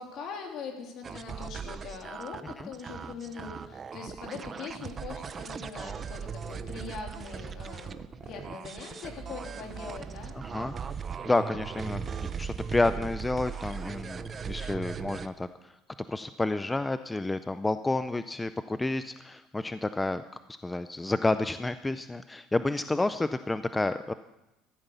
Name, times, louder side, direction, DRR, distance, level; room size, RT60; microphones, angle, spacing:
voice 1, 0.0-10.4, left 5 dB, 55° left, 2 dB, 3.3 m, -42 dB
sound 1, 1.0-15.3, right 6 dB, 30° right, 0.7 m, -38 dB
voice 2, 10.3-11.0 11.3-12.0 12.4-15.8 16.1-20.2 20.6-24.1, left 2 dB, 10° left, 12 dB, 0.4 m, -30 dB
14.5 x 13.0 x 6.9 m, 0.95 s
cardioid pair, 130°, 0 cm